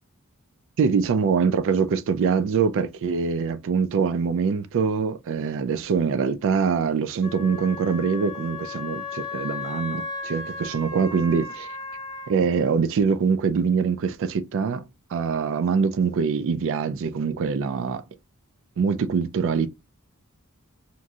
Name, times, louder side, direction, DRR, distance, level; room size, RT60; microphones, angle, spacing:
voice 1, 0.8-11.7 12.3-18.0 18.8-19.7, right 5 dB, 60° right, 0.3 m, -24 dB
Wind instrument woodwind instrument, 7.2-12.3, left 4 dB, 20° left, 0.9 m, -35 dB
3.0 x 2.5 x 2.3 m
head